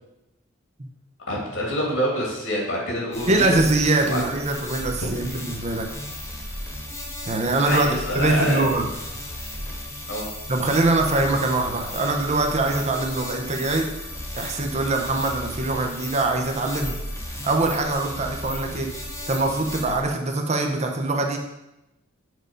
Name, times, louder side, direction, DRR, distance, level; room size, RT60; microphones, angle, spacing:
voice 1, 1.3-3.5 4.1-4.2 5.0-5.4 7.6-8.6 10.1-10.3, equal, 70° left, -3 dB, 2.3 m, -26 dB
sound 1, 3.1-20.0, left 1 dB, 15° left, 1.3 m, -35 dB
voice 2, 3.3-5.9 7.2-7.9 8.1-8.9 10.5-13.9 14.3-17.0 17.4-18.9 19.3-21.4, right 2 dB, 35° right, 3 dB, 0.7 m, -23 dB
6.3 x 4.0 x 5.2 m, 0.93 s
head